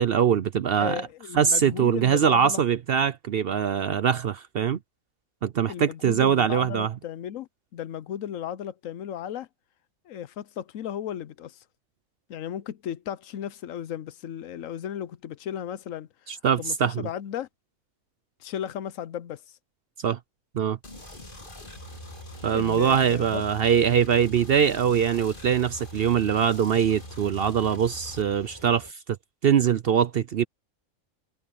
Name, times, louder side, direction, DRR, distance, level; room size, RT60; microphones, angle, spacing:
voice 1, 0.0-1.1 1.3-4.8 5.4-6.9 16.3-17.1 20.0-20.2 20.5-20.8 22.4-28.9 29.4-30.4, right 8 dB, 60° right, 0.7 m, -23 dB
voice 2, 0.8-2.6 5.7-9.5 10.0-11.6 12.3-16.3 16.6-17.5 18.4-19.4 22.5-23.4, left 10 dB, 75° left, 1.1 m, -35 dB
sound 1, 20.8-28.2, left 1 dB, 40° left, 2.5 m, -44 dB
sound 2, 20.9-28.9, right 1 dB, 20° right, 3.8 m, -48 dB
omnidirectional pair, 1.4 m